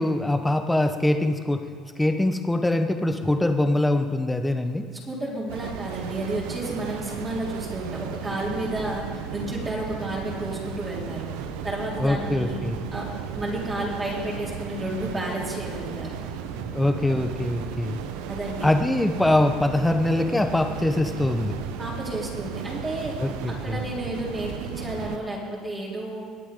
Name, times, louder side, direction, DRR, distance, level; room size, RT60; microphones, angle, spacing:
voice 1, 0.0-1.6 2.0-4.9 12.0-12.8 16.6-18.0 18.6-21.6 23.2-23.8, left 1 dB, 10° left, 7 dB, 1.1 m, -23 dB
voice 2, 5.1-9.0 9.3-11.3 11.6-12.6 12.9-16.2 18.3-18.7 21.8-23.2 23.5-26.2, right 1 dB, 20° right, -5 dB, 3.6 m, -31 dB
sound 1, 5.5-25.2, right 7 dB, 85° right, 0.9 m, -35 dB
21.5 x 8.4 x 3.8 m, 2.1 s
supercardioid pair, 95°, 0 cm